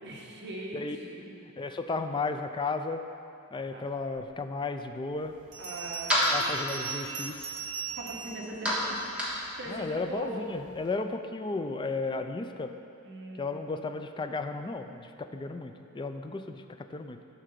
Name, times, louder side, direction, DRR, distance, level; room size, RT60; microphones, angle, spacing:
voice 1, 0.0-0.8 1.1-1.3 3.7-3.8 5.6-7.2 7.9-10.5 13.0-13.8, right 1 dB, 55° right, -2 dB, 1.3 m, -41 dB
voice 2, 0.7-1.2 1.6-3.0 3.5-5.4 6.3-7.4 9.7-12.7 13.4-17.2, left 3 dB, 20° left, 7 dB, 0.3 m, -34 dB
Bell, 4.3-4.4 5.5-9.4, right 7 dB, 75° right, 1.6 m, -40 dB
sound 1, 5.2-10.9, equal, 5° right, 1.5 m, -33 dB
11.0 x 3.9 x 6.7 m, 2.7 s
head